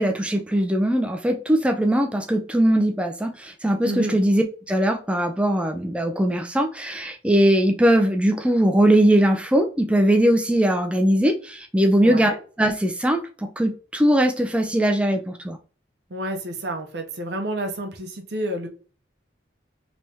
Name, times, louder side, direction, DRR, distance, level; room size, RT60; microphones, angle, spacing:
voice 1, 0.0-12.3 12.6-15.6, right 1 dB, 5° right, 0.4 m, -20 dB
voice 2, 3.8-4.2 12.0-12.4 16.1-18.7, right 1 dB, 60° right, 0.6 m, -29 dB
3.4 x 3.0 x 2.7 m
head